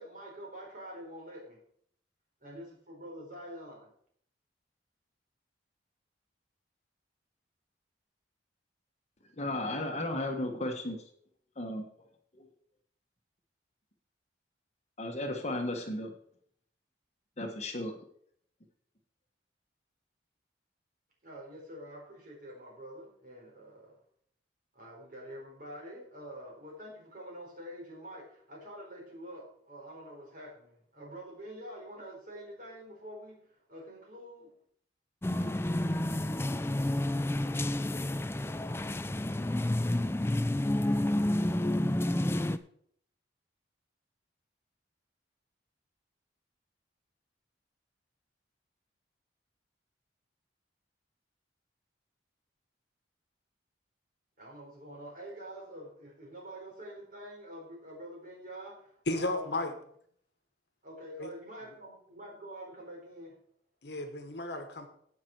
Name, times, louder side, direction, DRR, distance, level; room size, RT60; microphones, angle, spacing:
voice 1, 0.0-1.6 2.4-3.9 21.2-24.0 24.7-34.5 54.4-59.5 60.8-63.4, equal, 45° right, 4.7 m, -46 dB
voice 2, 9.4-11.0 11.6-11.9 12.4-12.5 15.0-16.1 17.4-17.9, left 1 dB, 35° left, 1.3 m, -34 dB
sound 1, 35.2-42.6, left 1 dB, 15° left, 0.4 m, -30 dB
voice 3, 59.1-59.7 61.2-61.3 63.8-64.9, left 2 dB, 65° left, 1.4 m, -33 dB
17.0 x 6.0 x 4.6 m
head